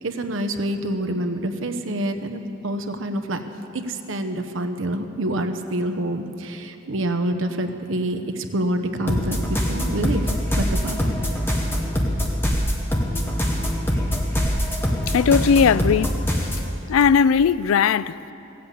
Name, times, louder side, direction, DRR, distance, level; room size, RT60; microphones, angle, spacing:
voice 1, 0.0-3.4 3.7-10.2 10.6-11.1, right 1 dB, 75° right, 0.9 m, -27 dB
sound 1, 9.1-16.7, equal, 10° left, 1.2 m, -23 dB
voice 2, 15.1-16.1 16.9-18.3, left 6 dB, 90° left, 0.3 m, -18 dB
16.5 x 7.7 x 8.4 m
head